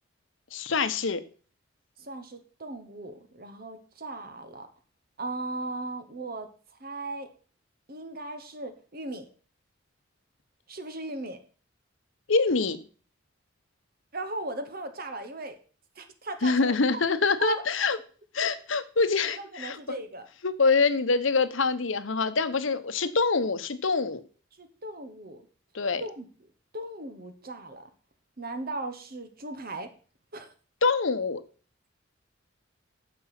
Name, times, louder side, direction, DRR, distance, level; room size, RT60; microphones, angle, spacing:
voice 1, 0.5-1.2 12.3-12.8 16.4-18.0 18.3-19.8 20.4-24.2 25.7-26.0 30.8-31.4, left 4 dB, 75° left, 12 dB, 0.9 m, -25 dB
voice 2, 2.0-4.7 5.2-6.5 6.8-7.3 7.9-9.3 10.7-11.4 14.1-15.6 15.9-17.0 17.4-17.6 19.2-20.3 24.6-25.5 26.0-26.3 26.7-27.9 28.4-29.9 30.3-30.5, right 2 dB, 50° right, 8 dB, 1.3 m, -37 dB
9.7 x 6.9 x 6.0 m, 0.40 s
head